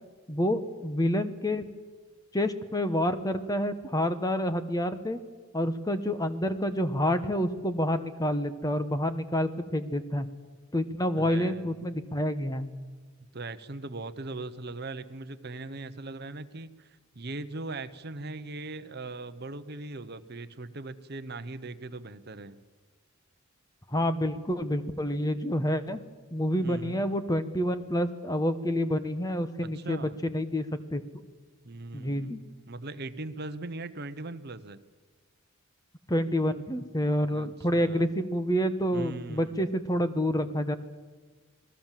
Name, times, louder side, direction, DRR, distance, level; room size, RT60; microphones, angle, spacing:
voice 1, 0.3-1.7 2.3-5.2 5.5-10.3 10.7-12.7 23.9-26.0 26.3-30.7 30.9-31.0 31.9-32.4 36.1-40.8, equal, 15° left, 10 dB, 1.1 m, -28 dB
voice 2, 11.2-11.8 13.3-22.6 26.6-27.0 29.6-30.2 31.6-34.8 37.2-38.1 38.9-39.6, right 2 dB, 45° right, 11 dB, 0.9 m, -40 dB
28.5 x 20.0 x 7.5 m, 1.4 s
head